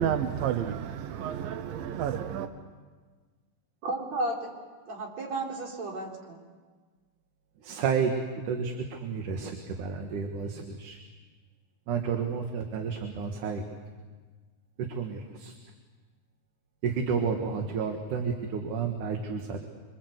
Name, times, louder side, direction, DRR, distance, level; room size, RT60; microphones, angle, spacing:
voice 1, 0.0-2.5, right 9 dB, 90° right, 2.7 m, -30 dB
voice 2, 3.8-4.5 4.9-6.4, right 2 dB, 55° right, 5.1 m, -33 dB
voice 3, 7.6-8.1 8.5-11.0 11.9-13.6 15.0-15.5 16.8-19.7, right 6 dB, 70° right, 3.1 m, -31 dB
26.0 x 26.0 x 8.2 m
omnidirectional pair, 3.9 m